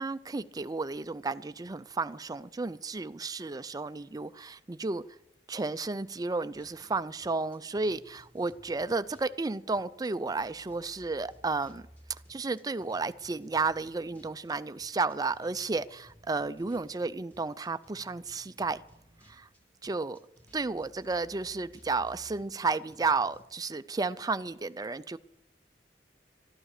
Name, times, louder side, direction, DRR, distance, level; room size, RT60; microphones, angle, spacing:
voice 1, 0.0-5.0 5.5-11.8 12.3-18.8 19.3-19.5 19.8-20.2 20.5-25.2, right 3 dB, 20° right, 0.4 m, -32 dB
sound 1, 6.5-23.5, equal, 10° left, 2.0 m, -59 dB
13.5 x 11.5 x 6.6 m
head